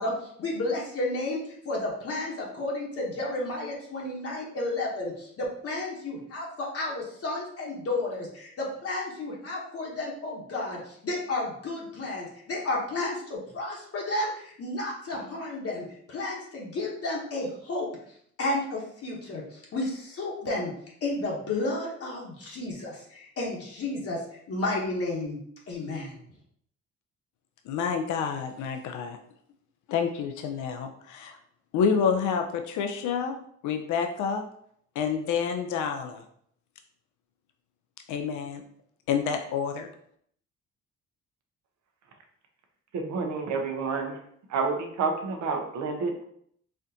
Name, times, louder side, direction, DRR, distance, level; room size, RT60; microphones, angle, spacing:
voice 1, 0.0-17.9 18.4-20.7 21.0-25.4 25.7-26.2, left 2 dB, 50° left, -3 dB, 1.0 m, -32 dB
voice 2, 27.7-29.2 29.9-31.4 31.7-33.3 33.6-34.4 35.0-36.2 38.1-38.6 39.1-39.9, left 6 dB, 75° left, 5 dB, 0.5 m, -28 dB
voice 3, 42.9-44.2 44.5-46.2, right 4 dB, 70° right, 3 dB, 0.8 m, -29 dB
4.3 x 2.5 x 2.7 m, 0.66 s
cardioid pair, 90°, 30 cm